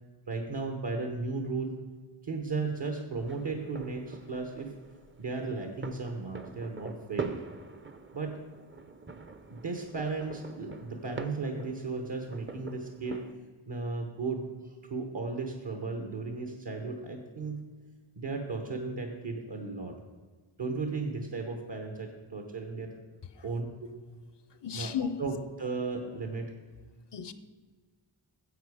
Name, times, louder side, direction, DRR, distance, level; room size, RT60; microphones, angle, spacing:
voice 1, 0.3-1.8 2.2-4.7 5.2-7.4 8.1-8.4 9.5-13.2 13.7-17.6 18.2-20.0 20.6-23.0 23.4-23.9 24.7-26.5, right 3 dB, 55° right, 1.1 m, -35 dB
sound 1, 3.2-13.3, right 4 dB, 25° right, 0.6 m, -44 dB
voice 2, 24.5-25.3 27.1-27.3, left 8 dB, 60° left, 0.6 m, -35 dB
10.0 x 7.5 x 4.8 m
wide cardioid pair, 65°, 49 cm